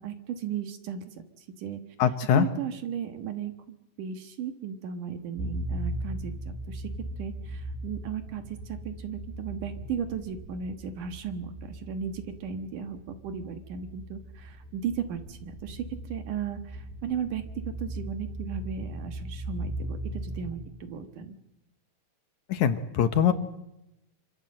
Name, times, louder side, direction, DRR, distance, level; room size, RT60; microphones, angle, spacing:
voice 1, 0.0-1.8 2.3-3.5 4.0-6.9 7.2-21.3, right 8 dB, 60° right, 8 dB, 2.5 m, -36 dB
voice 2, 2.0-2.5 22.5-23.3, left 8 dB, 70° left, 9 dB, 1.8 m, -23 dB
sound 1, 5.4-21.0, right 1 dB, 90° right, 9.0 m, -38 dB
26.5 x 25.5 x 7.7 m, 0.88 s
omnidirectional pair, 4.8 m